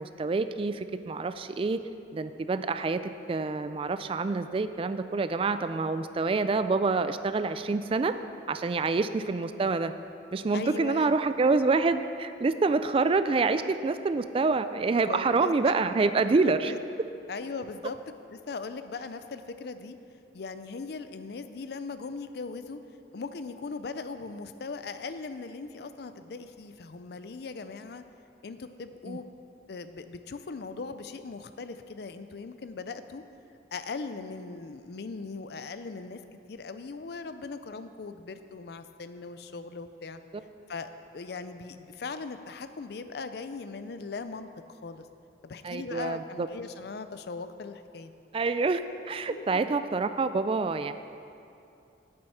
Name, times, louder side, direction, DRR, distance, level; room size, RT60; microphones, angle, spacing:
voice 1, 0.0-1.8 2.1-8.2 8.5-9.9 10.3-16.7 29.1-29.2 45.6-46.5 48.3-48.8 49.1-50.9, right 3 dB, 30° right, 11 dB, 0.3 m, -27 dB
voice 2, 10.5-11.1 15.0-15.7 16.4-16.8 17.3-18.0 18.3-20.0 20.3-22.8 23.1-28.0 28.4-29.3 29.7-33.2 33.7-36.2 36.5-40.2 40.7-45.1 45.4-48.1 49.3-49.5, left 4 dB, 60° left, 10 dB, 0.5 m, -39 dB
8.8 x 7.7 x 5.7 m, 2.6 s
head